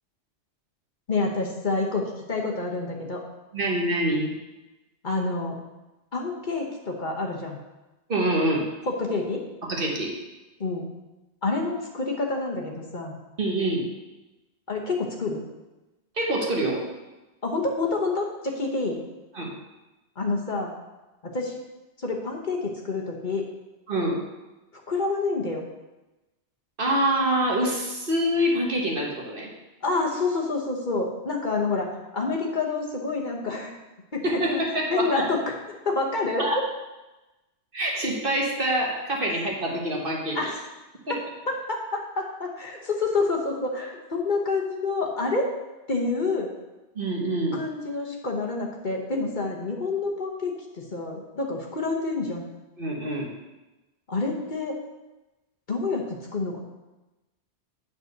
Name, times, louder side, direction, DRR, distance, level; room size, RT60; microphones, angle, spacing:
voice 1, 1.1-3.2 5.0-5.5 6.1-7.6 8.9-9.4 10.6-10.9 11.4-13.1 14.7-15.4 17.4-19.0 20.2-20.7 21.2-21.6 22.0-23.5 24.9-25.6 29.8-31.9 32.1-33.7 34.1-34.6 34.9-35.5 35.8-36.7 40.3-40.6 41.1-41.2 41.5-45.5 45.9-46.5 47.5-52.5 54.1-54.8 55.7-56.6, left 3 dB, 45° left, 0 dB, 1.3 m, -28 dB
voice 2, 3.5-4.3 8.1-8.7 9.7-10.1 13.4-13.8 16.2-16.9 19.3-19.5 23.9-24.2 26.8-29.5 34.2-35.3 36.4-36.6 37.7-40.4 41.1-41.2 46.9-47.6 52.8-53.3, right 1 dB, 50° right, -1 dB, 1.7 m, -25 dB
9.3 x 4.3 x 6.6 m, 1.0 s
omnidirectional pair, 1.1 m